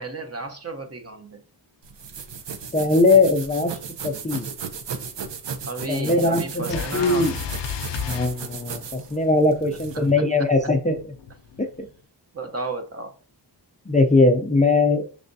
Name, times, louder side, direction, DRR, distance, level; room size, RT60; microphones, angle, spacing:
voice 1, 0.0-1.4 5.6-7.3 9.7-10.2 12.3-13.1, right 2 dB, 35° right, 0.8 m, -33 dB
sound 1, 1.8-10.1, right 6 dB, 85° right, 0.7 m, -36 dB
voice 2, 2.7-3.8 4.0-4.5 5.9-7.3 8.1-11.0 13.9-15.1, left 3 dB, 20° left, 0.4 m, -20 dB
sound 2, 6.7-9.2 10.6-11.9, left 7 dB, 80° left, 0.5 m, -33 dB
6.0 x 3.3 x 2.6 m
wide cardioid pair, 90°, 42 cm